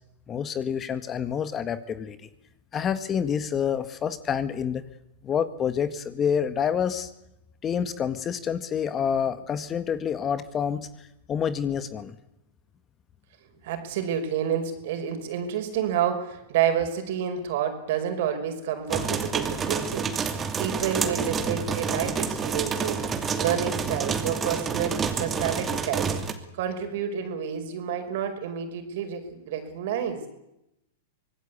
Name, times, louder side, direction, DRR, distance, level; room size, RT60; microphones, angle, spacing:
voice 1, 0.3-2.3 2.7-4.8 5.2-7.1 7.6-12.2, left 7 dB, 25° left, 12 dB, 1.6 m, -28 dB
voice 2, 13.6-30.2, right 8 dB, 60° right, 7 dB, 5.2 m, -29 dB
sound 1, 18.9-26.3, right 5 dB, 20° right, 2.8 m, -28 dB
25.0 x 19.0 x 8.4 m, 0.88 s
hypercardioid pair, 105°, 0 cm